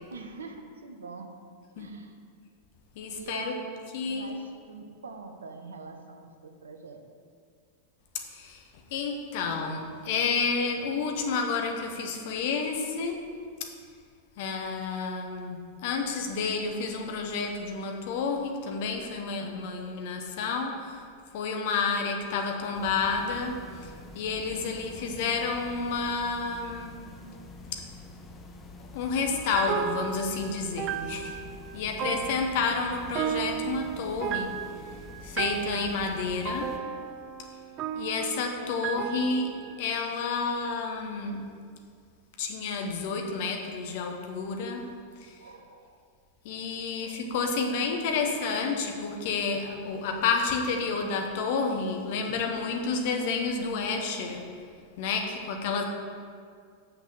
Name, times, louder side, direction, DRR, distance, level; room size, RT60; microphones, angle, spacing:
voice 1, 0.1-1.3 1.8-2.2 3.2-7.0 24.9-25.4 32.0-32.3 38.9-39.2 45.4-46.0 47.0-47.2 48.2-48.3 50.5-50.6 53.1-53.3 55.1-55.3, right 4 dB, 70° right, 5 dB, 0.8 m, -44 dB
voice 2, 2.9-3.6 3.9-4.4 8.1-8.6 8.9-13.2 13.6-13.7 14.4-21.0 21.3-27.0 27.7-27.8 28.9-31.4 31.7-34.6 35.2-36.8 37.9-41.5 42.4-44.9 45.2-45.4 46.4-54.4 55.0-55.8, left 4 dB, 50° left, 3 dB, 1.1 m, -30 dB
sound 1, 22.7-36.8, left 2 dB, 20° left, 0.8 m, -47 dB
sound 2, 29.3-39.9, right 8 dB, 35° right, 0.4 m, -35 dB
6.1 x 5.8 x 6.9 m, 2.1 s
figure-of-eight pair, 90°, 0 cm